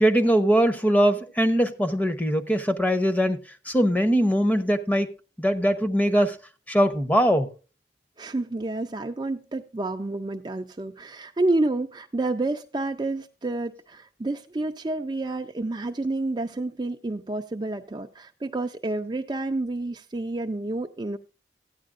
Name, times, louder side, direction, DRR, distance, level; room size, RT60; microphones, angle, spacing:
voice 1, 0.0-3.4 3.6-5.1 5.4-6.4 6.7-7.5, equal, 10° left, 0.7 m, -21 dB
voice 2, 8.2-21.2, right 2 dB, 25° right, 0.4 m, -29 dB
15.0 x 9.5 x 2.5 m
head